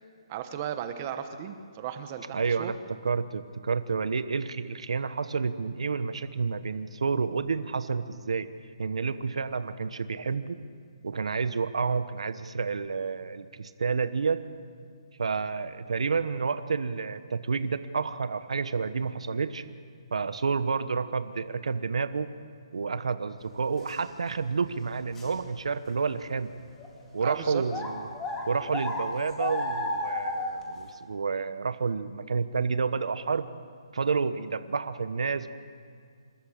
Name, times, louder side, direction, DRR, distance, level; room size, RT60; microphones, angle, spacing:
voice 1, 0.3-2.7 27.2-27.6, right 10 dB, 25° right, 8 dB, 1.1 m, -36 dB
voice 2, 2.3-2.7 3.0-8.5 8.8-10.6 11.0-14.4 15.2-19.6 20.1-22.3 22.7-26.5 27.1-28.1 28.5-33.5 33.9-35.5, right 5 dB, 80° right, 11 dB, 1.1 m, -29 dB
sound 1, 23.9-24.0 24.5-24.6 25.1-25.3 26.0-26.1 26.8-26.9 27.7-30.6, left 2 dB, 10° left, 2.1 m, -32 dB
26.5 x 13.0 x 8.8 m, 2.1 s
hypercardioid pair, 170°, 3 cm